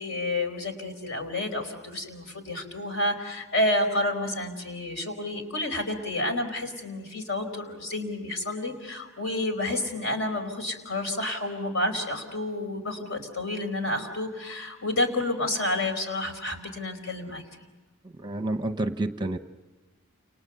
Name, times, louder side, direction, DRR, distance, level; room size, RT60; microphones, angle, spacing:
voice 1, 0.0-17.4, left 1 dB, 60° left, 6 dB, 4.5 m, -30 dB
voice 2, 18.0-19.4, right 2 dB, 20° right, 8 dB, 0.8 m, -29 dB
30.0 x 29.0 x 6.9 m, 1.2 s
head